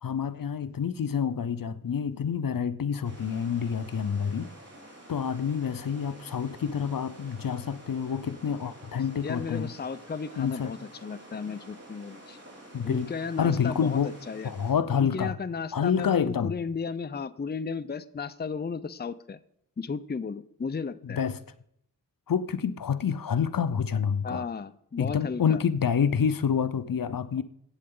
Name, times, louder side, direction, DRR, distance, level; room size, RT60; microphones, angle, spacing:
voice 1, 0.0-4.5 5.1-9.7 10.4-10.7 12.7-13.1 13.4-14.1 14.4-15.3 15.7-16.5 21.0-21.4 22.3-24.4 25.0-27.4, left 7 dB, 70° left, 13 dB, 0.7 m, -28 dB
sound 1, 3.0-14.7, right 1 dB, 45° right, 4.7 m, -49 dB
voice 2, 9.2-12.4 12.8-14.5 14.9-19.4 19.8-21.2 24.2-25.6, left 5 dB, 30° left, 13 dB, 0.5 m, -34 dB
14.5 x 8.5 x 3.8 m, 0.70 s
wide cardioid pair, 80°, 35 cm